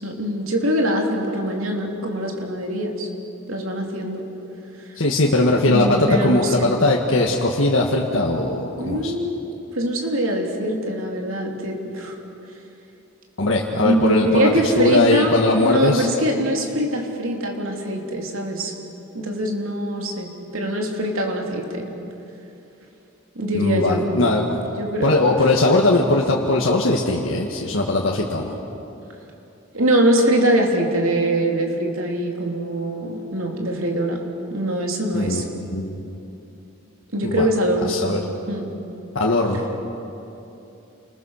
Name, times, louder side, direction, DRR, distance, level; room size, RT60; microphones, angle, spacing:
voice 1, 0.0-3.1 3.5-4.3 5.6-6.7 8.8-9.5 9.7-12.1 13.8-18.7 19.1-21.9 23.3-24.1 24.7-25.2 29.7-34.2 34.5-35.4 37.1-38.0 38.5-38.7, right 1 dB, 85° right, 1 dB, 3.2 m, -23 dB
voice 2, 5.0-9.1 13.4-16.1 23.5-24.6 25.0-28.5 35.1-36.0 37.2-37.5 37.9-38.2 39.2-39.8, left 2 dB, 70° left, -2 dB, 1.7 m, -20 dB
28.5 x 21.0 x 6.5 m, 2.9 s
head